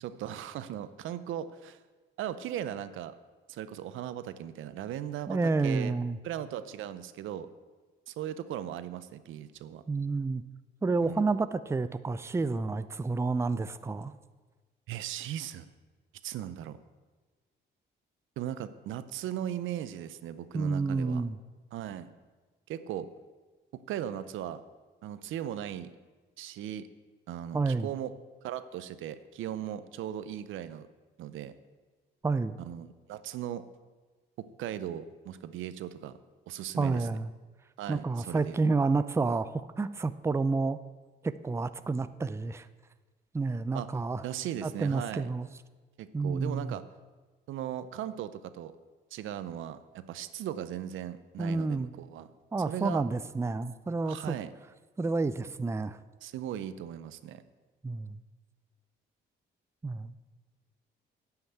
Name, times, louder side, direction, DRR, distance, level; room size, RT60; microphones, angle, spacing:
voice 1, 0.0-1.8 2.2-3.1 3.5-5.4 5.6-5.9 6.2-7.5 8.1-9.8 11.0-11.2 14.9-15.7 16.2-16.8 18.4-21.2 21.7-22.1 22.7-23.1 23.9-24.6 25.0-25.9 26.4-26.9 27.3-28.1 28.4-30.9 31.2-31.5 32.6-33.6 34.4-36.2 36.5-37.1 37.8-38.6 43.7-43.9 44.2-45.3 46.0-46.8 47.5-48.7 49.1-52.3 52.7-53.0 54.1-54.5 56.2-57.4, right 11 dB, 80° right, 13 dB, 0.6 m, -38 dB
voice 2, 5.3-6.2 9.9-10.4 10.8-14.1 20.5-21.4 27.5-27.9 32.2-32.6 36.8-37.3 37.9-40.8 41.2-42.7 43.3-44.2 44.6-45.5 46.1-46.7 51.4-51.9 52.5-54.4 55.0-56.0 57.8-58.2 59.8-60.1, right 3 dB, 15° right, 13 dB, 0.4 m, -29 dB
10.0 x 5.8 x 7.8 m, 1.3 s
cardioid pair, 90°, 20 cm